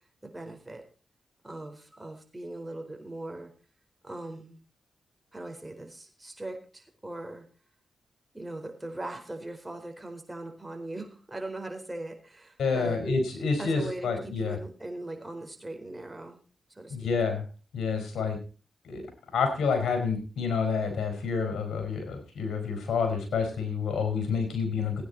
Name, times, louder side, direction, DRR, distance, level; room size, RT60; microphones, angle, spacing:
voice 1, 0.2-0.8 1.4-3.5 4.0-4.6 5.3-7.5 8.3-13.0 13.6-16.4 16.8-17.1, right 2 dB, 20° right, 4 dB, 4.3 m, -40 dB
voice 2, 12.6-14.6 16.9-17.5 17.7-18.4 18.8-19.0 19.3-25.0, left 5 dB, 80° left, 5 dB, 4.6 m, -28 dB
16.5 x 9.5 x 4.2 m, 0.37 s
supercardioid pair, 45°, 0 cm